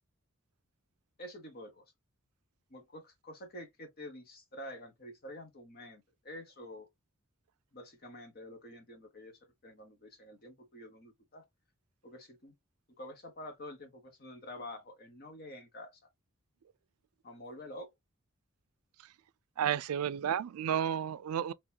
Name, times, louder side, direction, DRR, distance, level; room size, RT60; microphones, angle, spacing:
voice 1, 1.2-1.8 2.7-6.9 7.7-11.5 12.0-12.5 13.0-16.0 17.2-17.9, left 1 dB, 45° left, 1.1 m, -48 dB
voice 2, 19.6-21.5, right 9 dB, 85° right, 0.4 m, -32 dB
3.7 x 2.9 x 2.8 m
head